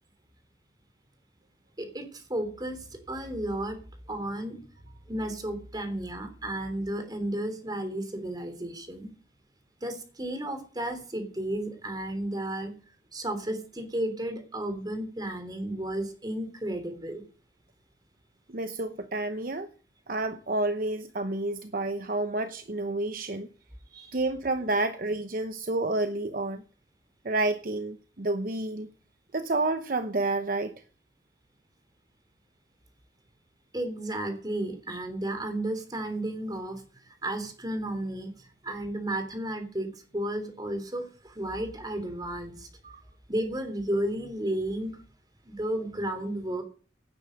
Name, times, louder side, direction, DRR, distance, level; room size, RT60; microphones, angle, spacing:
voice 1, 1.8-3.8 4.1-4.6 5.1-9.1 9.8-12.7 13.1-17.2 23.9-24.1 33.7-42.7 43.3-45.0 45.4-46.6, right 1 dB, 25° right, 7 dB, 3.3 m, -33 dB
voice 2, 18.5-19.7 20.1-23.5 24.1-26.6 27.2-28.9 29.3-30.7 42.8-43.0, right 2 dB, 50° right, 9 dB, 0.9 m, -29 dB
17.0 x 9.4 x 5.2 m, 0.39 s
head